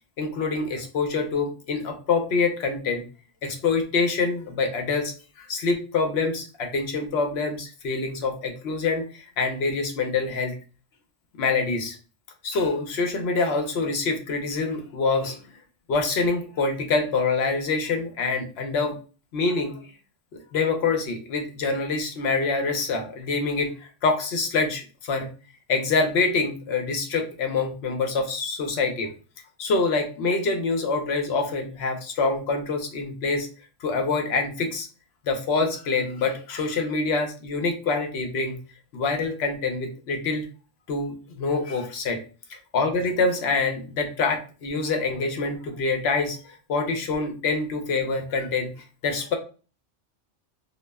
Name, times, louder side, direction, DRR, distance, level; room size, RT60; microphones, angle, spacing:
voice 1, 0.2-3.0 3.4-10.5 11.3-12.0 12.4-15.4 15.9-19.0 19.3-19.8 20.5-25.3 25.7-29.1 29.6-33.5 33.8-34.9 35.3-38.6 38.9-40.5 40.9-42.2 42.5-48.7 49.0-49.3, left 4 dB, 65° left, 4 dB, 0.8 m, -26 dB
2.3 x 2.0 x 3.3 m, 0.36 s
omnidirectional pair, 1.3 m